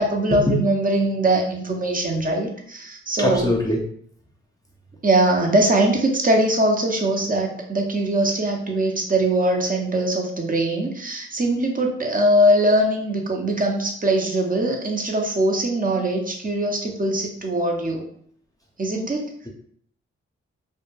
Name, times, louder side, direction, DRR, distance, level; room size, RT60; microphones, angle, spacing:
voice 1, 0.0-3.5 5.0-18.0 18.8-19.3, right 1 dB, 30° right, 2 dB, 0.7 m, -21 dB
voice 2, 3.2-3.8, left 1 dB, 10° left, -1 dB, 0.6 m, -22 dB
2.1 x 2.1 x 3.1 m, 0.63 s
supercardioid pair, 45°, 29 cm